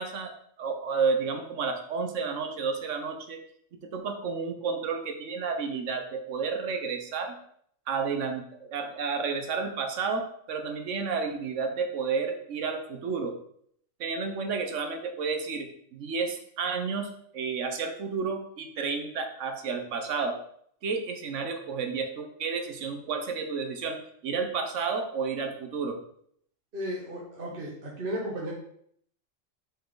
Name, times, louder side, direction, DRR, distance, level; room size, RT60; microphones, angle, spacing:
voice 1, 0.0-3.4 3.9-7.3 7.9-13.3 14.0-20.4 20.8-26.0, right 5 dB, 70° right, 5 dB, 1.3 m, -31 dB
voice 2, 26.7-28.5, right 1 dB, 45° right, -4 dB, 1.6 m, -34 dB
7.8 x 4.5 x 3.9 m, 0.67 s
omnidirectional pair, 1.3 m